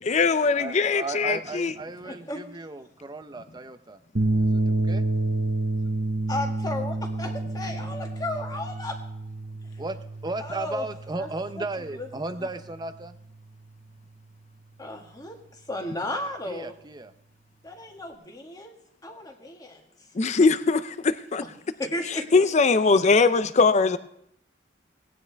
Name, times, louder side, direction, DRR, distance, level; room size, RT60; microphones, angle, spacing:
voice 1, 0.0-1.7 20.1-21.4 22.0-24.0, left 4 dB, 40° left, 12 dB, 0.5 m, -21 dB
voice 2, 0.5-4.0 4.4-5.1 9.8-13.2 16.5-17.1, right 2 dB, 25° right, 10 dB, 0.6 m, -35 dB
voice 3, 2.0-2.4 6.3-9.0 10.4-10.8 11.2-11.3 11.6-11.7 12.0-12.1 14.8-15.4 15.7-16.7 17.6-18.7 19.0-19.8 21.8-22.4, left 2 dB, 20° left, 2 dB, 1.7 m, -34 dB
sound 1, 4.2-12.6, right 2 dB, 50° right, 1.1 m, -29 dB
18.0 x 9.7 x 3.4 m, 0.73 s
head